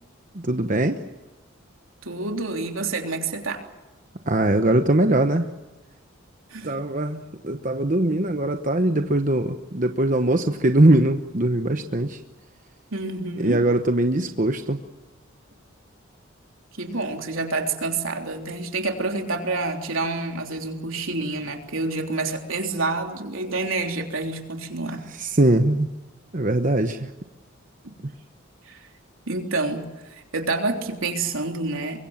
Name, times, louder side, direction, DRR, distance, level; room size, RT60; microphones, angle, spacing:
voice 1, 0.3-1.0 4.3-5.5 6.6-7.2 7.4-12.2 13.4-14.8 25.2-25.9 26.3-27.1, right 1 dB, 40° right, 6 dB, 1.0 m, -21 dB
voice 2, 2.0-3.6 6.5-6.8 12.9-13.7 16.8-25.0 28.7-28.9 29.3-32.0, right 3 dB, 80° right, 3 dB, 3.5 m, -28 dB
24.5 x 23.0 x 7.3 m, 1.1 s
head